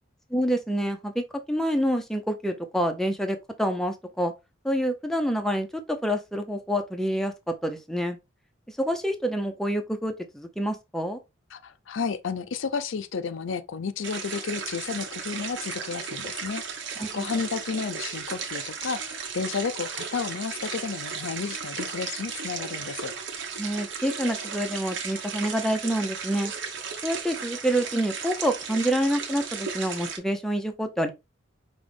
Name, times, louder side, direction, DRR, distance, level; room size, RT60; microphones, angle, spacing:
voice 1, 0.3-4.3 4.6-7.3 7.6-8.2 8.8-11.2 17.0-17.3 23.6-26.5 27.0-31.1, equal, ahead, 0.6 m, -27 dB
voice 2, 11.5-16.8 17.1-23.1, left 5 dB, 65° left, 0.5 m, -32 dB
sound 1, 14.0-30.2, right 6 dB, 60° right, 1.1 m, -35 dB
5.3 x 3.0 x 3.3 m
head